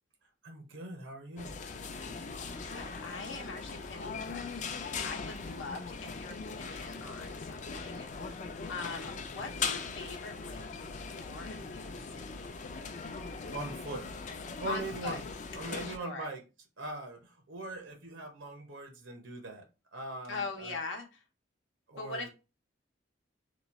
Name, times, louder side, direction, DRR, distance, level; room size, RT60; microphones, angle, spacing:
voice 1, 0.4-1.5 13.5-14.0 14.6-15.3 15.5-16.4 16.8-19.6 19.9-20.8 21.9-22.3, right 2 dB, 85° right, 0.8 m, -41 dB
sound 1, 1.4-16.0, left 4 dB, 40° left, 0.4 m, -40 dB
voice 2, 1.9-12.5 14.7-15.2 15.8-16.3 20.3-21.2 22.0-22.3, left 3 dB, 85° left, 0.7 m, -43 dB
3.0 x 2.3 x 4.0 m
head